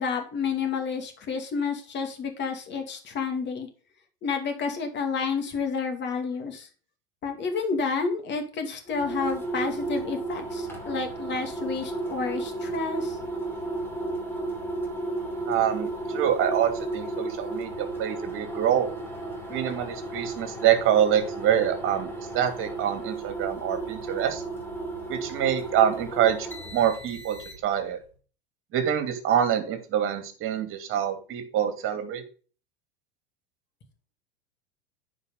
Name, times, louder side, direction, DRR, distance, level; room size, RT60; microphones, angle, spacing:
voice 1, 0.0-3.7 4.2-6.7 7.2-13.2, left 5 dB, 35° left, 5 dB, 2.6 m, -30 dB
sound 1, 8.9-27.9, right 2 dB, 5° left, 3.1 m, -34 dB
voice 2, 15.5-18.9 19.5-22.1 22.3-24.4 25.1-27.4 27.6-28.0 28.7-32.2, right 10 dB, 40° right, 8 dB, 2.6 m, -25 dB
9.8 x 5.3 x 5.3 m, 0.39 s
hypercardioid pair, 105°, 31 cm